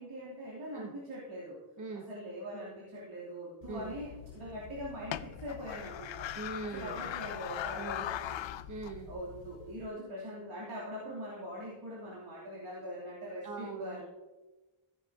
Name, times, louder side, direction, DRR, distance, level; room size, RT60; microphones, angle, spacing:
voice 1, 0.0-1.6 2.1-6.3 6.7-8.7 9.1-14.0, equal, 80° right, -8 dB, 3.3 m, -42 dB
sound 1, 3.6-9.9, left 11 dB, 65° left, 0.5 m, -41 dB
voice 2, 6.3-7.0 7.7-8.1 8.7-9.1 13.4-14.0, right 3 dB, 35° right, 1 dB, 1.1 m, -41 dB
15.0 x 10.0 x 2.9 m, 1.2 s
wide cardioid pair, 115°, 49 cm